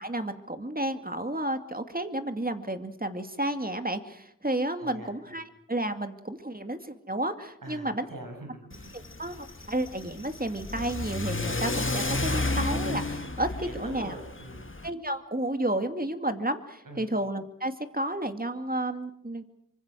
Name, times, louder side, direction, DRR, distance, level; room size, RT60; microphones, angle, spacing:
voice 1, 0.0-8.1 8.9-14.2 14.8-19.4, right 1 dB, 25° right, 8 dB, 2.5 m, -32 dB
voice 2, 4.8-5.4 7.6-9.1 13.6-14.7 16.9-17.1, right 1 dB, 85° right, 4 dB, 6.9 m, -44 dB
Car / Accelerating revving vroom, 8.7-14.9, left 2 dB, 40° left, 2.0 m, -32 dB
26.5 x 25.0 x 6.4 m, 0.72 s
wide cardioid pair, 45°, 32 cm